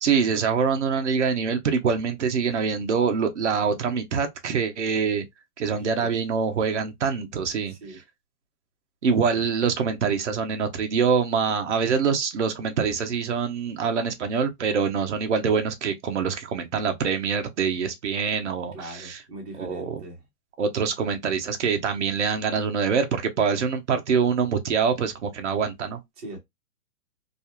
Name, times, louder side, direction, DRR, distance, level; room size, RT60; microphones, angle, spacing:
voice 1, 0.0-5.3 5.6-7.7 9.0-19.2 19.6-20.0 20.6-26.0, right 6 dB, 50° right, 0.5 m, -25 dB
voice 2, 5.6-6.2 7.7-8.0 18.7-20.2 26.2-26.4, right 1 dB, 25° right, 0.9 m, -41 dB
2.4 x 2.3 x 2.8 m
hypercardioid pair, 170°, 48 cm